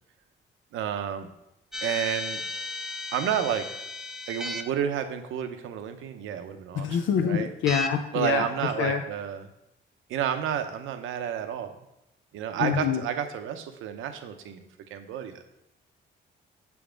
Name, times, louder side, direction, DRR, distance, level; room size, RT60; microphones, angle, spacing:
voice 1, 0.7-1.3 1.8-2.4 3.1-3.9 4.3-7.0 7.2-7.5 8.1-9.5 10.1-11.7 12.3-15.4, right 9 dB, 85° right, 7 dB, 0.7 m, -30 dB
sound 1, 1.7-4.6 7.7-7.9, left 2 dB, ahead, 0.5 m, -34 dB
voice 2, 6.7-9.0 12.6-13.0, left 7 dB, 75° left, 5 dB, 0.5 m, -26 dB
7.0 x 3.5 x 5.0 m, 0.85 s
cardioid pair, 90°, 20 cm